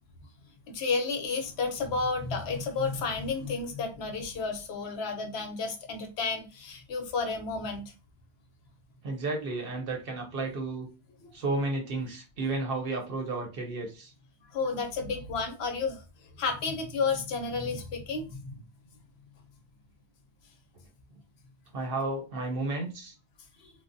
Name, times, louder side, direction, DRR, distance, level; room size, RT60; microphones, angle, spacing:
voice 1, 0.7-7.8 11.2-11.3 14.5-18.6 23.6-23.7, left 4 dB, 70° left, 5 dB, 0.8 m, -32 dB
voice 2, 9.0-10.9 11.3-14.1 21.7-23.1, right 2 dB, 60° right, 2 dB, 0.8 m, -32 dB
3.1 x 2.0 x 2.5 m, 0.30 s
omnidirectional pair, 1.2 m